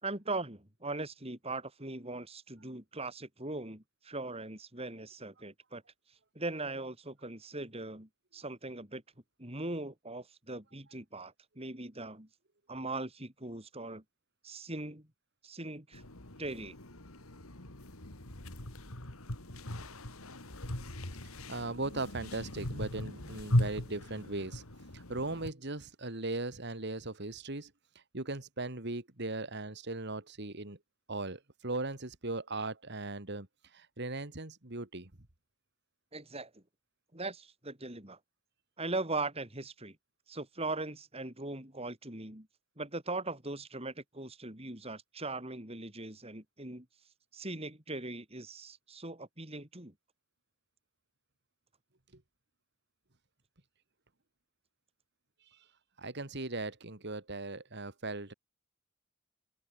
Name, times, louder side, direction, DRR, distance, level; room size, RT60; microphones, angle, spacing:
voice 1, 0.0-5.8 6.3-9.0 9.4-12.3 12.7-14.0 14.4-15.1 15.4-16.0 16.4-16.8 36.1-36.6 37.1-38.2 38.8-40.0 40.3-42.5 42.8-46.9 47.3-49.9, right 2 dB, 30° right, 4.8 m, -40 dB
sound 1, 15.9-25.5, left 1 dB, 85° left, 3.6 m, -38 dB
voice 2, 21.5-24.6 24.9-27.7 28.1-30.8 31.1-33.5 33.7-35.1 56.0-58.3, right 2 dB, 50° right, 2.4 m, -38 dB
open air
head